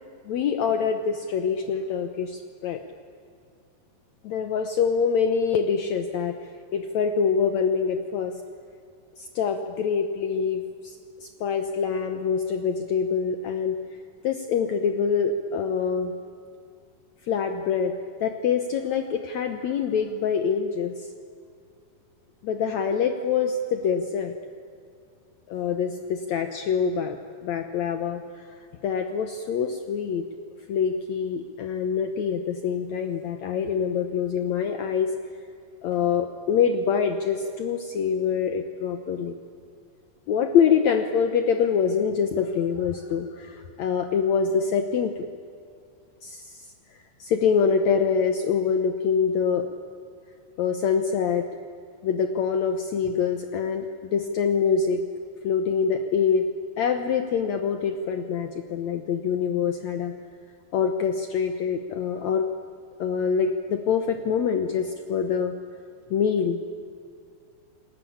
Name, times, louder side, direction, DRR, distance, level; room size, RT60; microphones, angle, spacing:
voice 1, 0.3-2.8 4.2-6.4 6.7-8.3 9.2-13.8 14.2-16.1 17.3-17.9 18.2-21.1 22.4-24.3 25.5-28.5 28.8-30.2 30.7-35.1 35.8-39.3 40.3-45.3 46.2-46.7 47.2-49.7 50.6-51.4 52.0-55.0 55.4-56.5 56.8-60.1 60.7-62.5 63.0-65.5 66.1-66.6, left 6 dB, 65° left, 7 dB, 2.0 m, -25 dB
30.0 x 20.5 x 8.7 m, 2.3 s
omnidirectional pair, 3.9 m